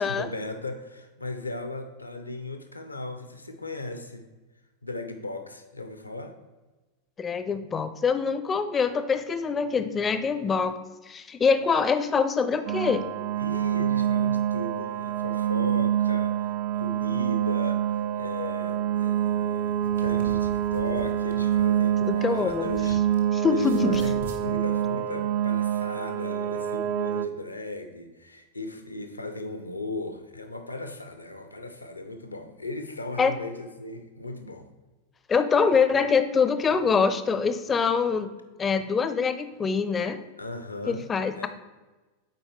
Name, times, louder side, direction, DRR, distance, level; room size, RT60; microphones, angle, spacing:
voice 1, 0.0-4.3 4.8-6.3 13.4-23.3 23.5-34.7 40.4-41.1 41.3-41.5, left 2 dB, 80° left, 7 dB, 0.6 m, -37 dB
voice 2, 7.2-10.8 11.1-13.1 22.0-22.7 23.3-24.0 33.2-33.3 35.3-38.3 38.6-40.2 40.9-41.5, left 5 dB, 20° left, 11 dB, 0.4 m, -24 dB
sound 1, 12.7-27.3, right 10 dB, 45° right, 0.3 m, -26 dB
sound 2, 19.7-23.2 23.5-24.4, right 3 dB, 70° right, 0.9 m, -43 dB
7.5 x 4.5 x 3.1 m, 1.2 s
figure-of-eight pair, 90°, 0 cm